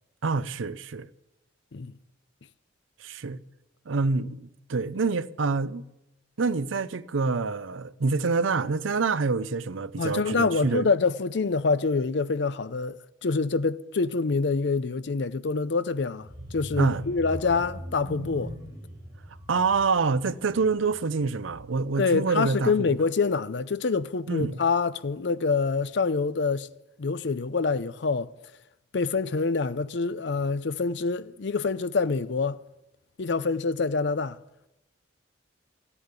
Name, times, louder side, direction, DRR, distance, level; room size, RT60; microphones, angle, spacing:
voice 1, 0.2-1.1 3.0-3.4 3.9-5.8 6.4-10.9 16.8-17.0 19.5-22.7 24.3-24.6, right 4 dB, 90° right, 0.6 m, -26 dB
voice 2, 10.0-18.5 22.0-26.7 27.0-28.3 28.9-32.6 33.2-34.4, left 4 dB, 65° left, 0.6 m, -26 dB
sound 1, 16.2-22.0 22.3-22.6 22.9-23.0, equal, 20° right, 3.6 m, -41 dB
14.5 x 10.0 x 8.3 m
head